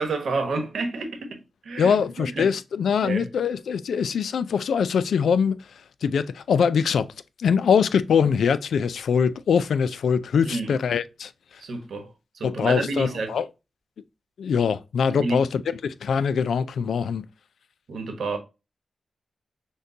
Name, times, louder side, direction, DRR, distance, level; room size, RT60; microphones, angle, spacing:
voice 1, 0.0-2.5 3.0-3.3 10.4-10.7 11.6-13.4 15.1-15.4 17.9-18.4, right 3 dB, 75° right, 1.1 m, -30 dB
voice 2, 1.8-5.7 6.0-7.1 7.4-11.3 12.4-13.5 14.4-17.2, left 6 dB, 85° left, 0.3 m, -23 dB
6.3 x 2.2 x 2.6 m
cardioid pair, 70°, 0 cm